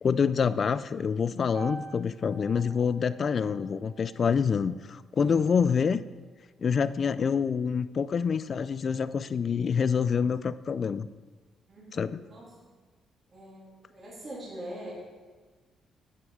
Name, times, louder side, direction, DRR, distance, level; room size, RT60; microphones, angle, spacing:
voice 1, 0.0-6.0 6.6-11.1 11.9-12.2, left 6 dB, 45° left, 16 dB, 0.3 m, -26 dB
sound 1, 1.5-5.7, right 3 dB, 85° right, 1.4 m, -47 dB
voice 2, 11.7-12.7 13.3-14.9, right 1 dB, 40° right, -7 dB, 3.1 m, -43 dB
9.3 x 8.6 x 3.7 m, 1.4 s
cardioid pair, 90°, 0 cm